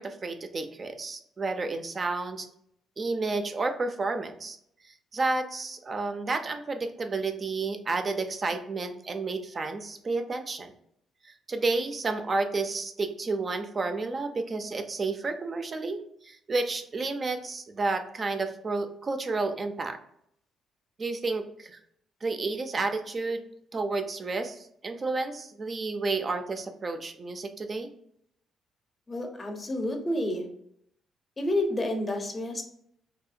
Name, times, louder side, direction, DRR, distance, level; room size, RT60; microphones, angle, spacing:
voice 1, 0.0-2.5 3.0-4.6 5.1-10.7 11.2-20.0 21.0-21.8 22.2-23.4 23.7-27.9, right 3 dB, 35° right, 7 dB, 0.4 m, -31 dB
voice 2, 29.1-30.5 31.4-32.6, left 1 dB, 25° left, 3 dB, 0.6 m, -29 dB
2.7 x 2.1 x 2.4 m, 0.72 s
cardioid pair, 90°, 0 cm